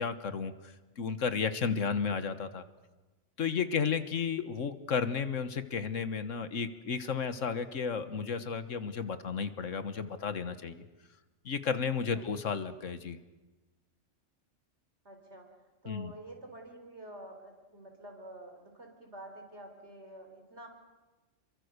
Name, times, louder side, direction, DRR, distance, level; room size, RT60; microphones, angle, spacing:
voice 1, 0.0-2.6 3.4-10.8 11.4-13.2 15.8-16.1, left 6 dB, 80° left, 11 dB, 1.6 m, -33 dB
voice 2, 15.0-15.5 15.8-20.7, right 1 dB, 60° right, 4 dB, 4.2 m, -48 dB
28.0 x 23.0 x 6.7 m, 1.1 s
omnidirectional pair, 1.3 m